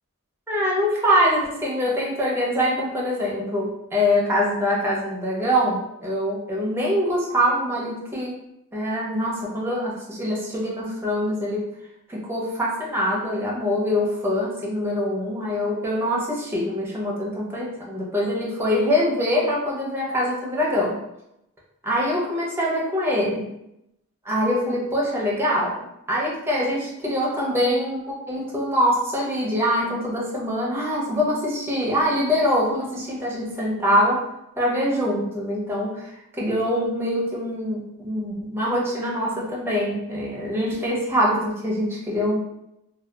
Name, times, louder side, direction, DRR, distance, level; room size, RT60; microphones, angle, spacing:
voice 1, 0.5-8.3 8.7-11.7 12.1-21.0 21.8-23.5 24.2-28.0 28.3-34.2 34.6-42.4, equal, 10° right, -4 dB, 0.5 m, -24 dB
2.7 x 2.2 x 2.2 m, 0.83 s
head